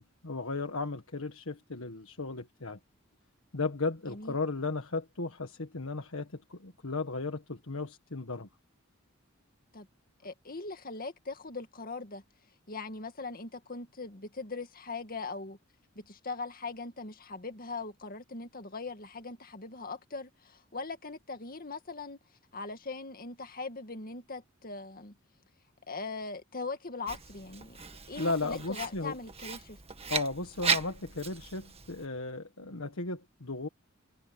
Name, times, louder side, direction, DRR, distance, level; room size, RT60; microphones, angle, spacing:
voice 1, 0.0-2.8 3.5-8.5 28.2-29.1 30.1-33.7, left 3 dB, 85° left, 1.6 m, -35 dB
voice 2, 10.2-12.2 12.7-15.6 16.0-22.2 22.5-25.2 25.9-27.8 28.1-29.8, left 3 dB, 45° left, 2.1 m, -40 dB
Writing, 27.1-32.1, right 6 dB, 30° right, 1.7 m, -36 dB
head